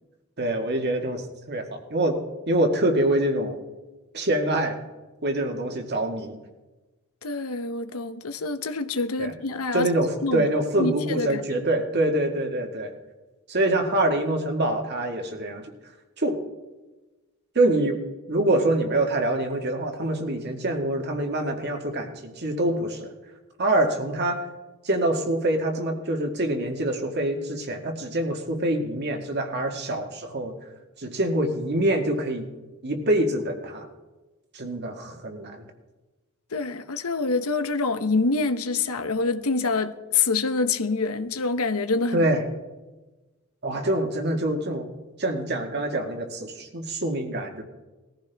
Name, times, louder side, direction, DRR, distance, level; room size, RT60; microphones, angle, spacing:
voice 1, 0.4-1.2 1.5-2.2 2.5-3.6 4.1-4.8 5.2-6.4 9.2-9.3 9.7-12.9 13.5-15.7 16.2-16.4 17.6-18.0 18.3-23.1 23.6-24.5 24.8-30.6 31.0-32.5 32.8-33.9 34.5-35.6 42.1-42.4 43.6-44.9 45.2-47.6, right 1 dB, 50° right, 1.8 m, -25 dB
voice 2, 7.2-9.9 10.2-10.5 10.8-11.4 36.5-42.3, left 3 dB, 85° left, 0.9 m, -26 dB
20.0 x 14.5 x 3.5 m
head